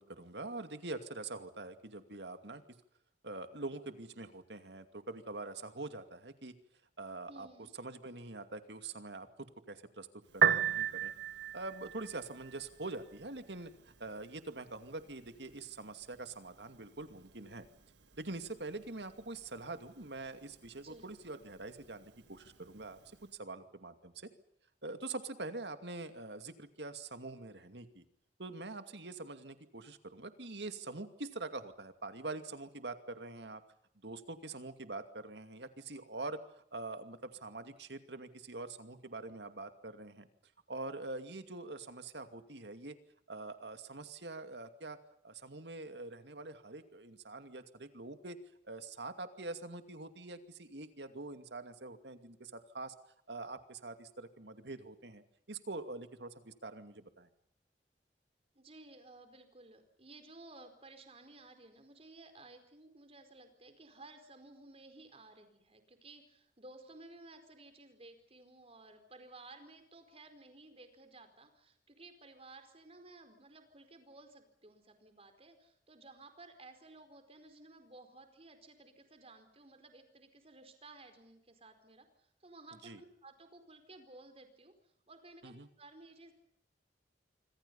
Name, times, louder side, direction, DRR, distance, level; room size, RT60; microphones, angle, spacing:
voice 1, 0.0-2.6 3.2-6.5 7.0-7.5 7.8-10.1 10.3-11.1 11.5-17.7 18.2-23.0 23.4-24.3 24.8-28.0 28.4-33.6 34.0-36.4 36.7-40.3 40.7-43.0 43.3-45.0 45.2-48.4 48.6-52.9 53.3-57.3 82.8-83.0 85.4-85.7, right 2 dB, 70° right, 8 dB, 2.5 m, -44 dB
voice 2, 7.3-7.7 20.8-21.1 58.5-86.3, right 2 dB, 35° right, 8 dB, 4.7 m, -56 dB
Piano, 10.3-23.3, right 8 dB, 85° right, 1.7 m, -39 dB
26.5 x 25.5 x 5.6 m, 0.73 s
head